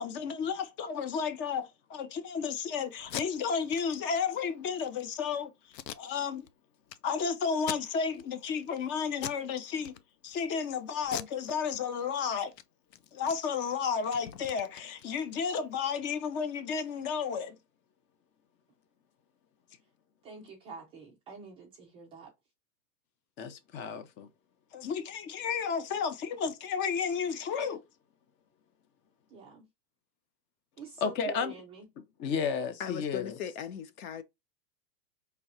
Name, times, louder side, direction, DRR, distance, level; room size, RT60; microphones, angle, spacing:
voice 1, 0.0-5.5 6.0-6.5 7.0-10.0 10.2-12.5 13.1-17.6 23.4-24.3 24.7-27.8 31.0-31.5 32.2-33.3, left 6 dB, 25° left, 0.7 m, -32 dB
Packing tape duct tape, 3.0-3.3 3.7-3.8 4.1-4.2 4.7-5.0 5.7-6.5 6.9-7.0 7.6-8.2 8.6-8.8 9.2-9.5 9.8-10.4 11.0-12.2 12.5-12.6 12.9-15.5, left 10 dB, 80° left, 0.7 m, -42 dB
voice 2, 20.2-22.3 29.3-29.7 30.8-31.9, right 4 dB, 10° right, 0.4 m, -47 dB
voice 3, 32.8-34.2, left 7 dB, 60° left, 1.0 m, -38 dB
4.6 x 3.4 x 2.7 m
hypercardioid pair, 130°, 49 cm